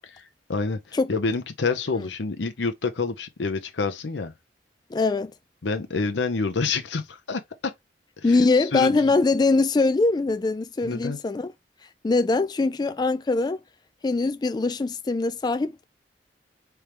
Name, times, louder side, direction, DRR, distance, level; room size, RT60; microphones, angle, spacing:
voice 1, 0.5-4.3 5.6-7.7 8.2-9.1 10.8-11.2, left 4 dB, 75° left, 0.7 m, -28 dB
voice 2, 4.9-5.3 8.2-11.5 12.0-13.6 14.0-15.8, left 3 dB, 25° left, 0.3 m, -22 dB
4.5 x 3.4 x 3.3 m
head